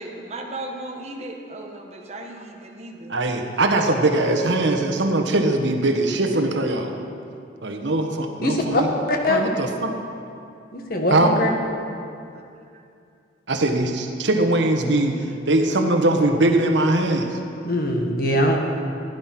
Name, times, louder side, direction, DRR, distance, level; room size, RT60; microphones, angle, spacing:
voice 1, 0.0-3.1, right 2 dB, 35° right, 2 dB, 1.4 m, -36 dB
voice 2, 3.1-6.9 7.6-8.9 9.3-9.9 11.1-11.3 13.5-17.4, right 2 dB, 75° right, 4 dB, 1.3 m, -21 dB
voice 3, 8.4-8.8 9.1-9.4 10.7-11.5 17.6-18.6, left 1 dB, 50° left, 2 dB, 1.7 m, -22 dB
15.5 x 10.0 x 6.0 m, 2.5 s
head